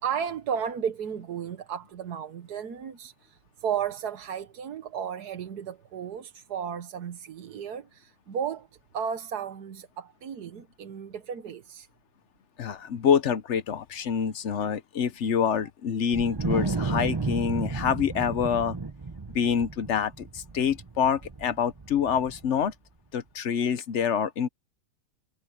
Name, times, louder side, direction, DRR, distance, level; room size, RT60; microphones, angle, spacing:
voice 1, 0.0-8.7 8.9-11.9, right 8 dB, 70° right, 1.6 m, -34 dB
voice 2, 12.6-18.8 19.3-22.7 23.1-24.5, left 7 dB, 55° left, 0.9 m, -26 dB
Wind, 16.1-22.7, right 3 dB, 25° right, 0.5 m, -33 dB
omnidirectional pair, 1.8 m